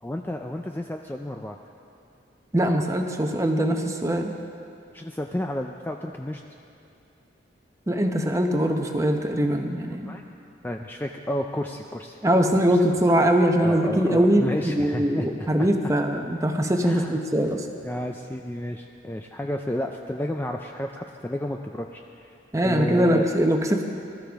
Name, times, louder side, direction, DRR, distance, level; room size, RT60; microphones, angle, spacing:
voice 1, 0.0-1.6 4.9-6.4 10.0-10.2 10.6-12.4 12.7-12.8 13.6-15.7 16.9-17.2 17.8-22.3 22.6-23.3, left 1 dB, 10° left, 3 dB, 0.3 m, -31 dB
voice 2, 2.5-4.3 7.9-10.1 12.2-17.7 22.5-23.8, equal, 15° right, 4 dB, 0.8 m, -22 dB
20.0 x 13.0 x 3.5 m, 2.6 s
head